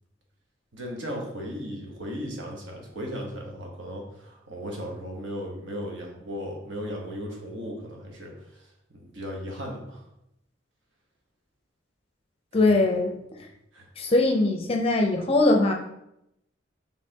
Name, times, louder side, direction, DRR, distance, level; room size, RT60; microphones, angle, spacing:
voice 1, 0.7-8.6 8.9-10.0 12.5-12.7 13.7-13.8, equal, 75° right, 0 dB, 1.1 m, -36 dB
voice 2, 12.5-13.1 14.0-15.7, left 2 dB, 30° left, 2 dB, 0.5 m, -21 dB
5.4 x 3.4 x 2.8 m, 0.81 s
head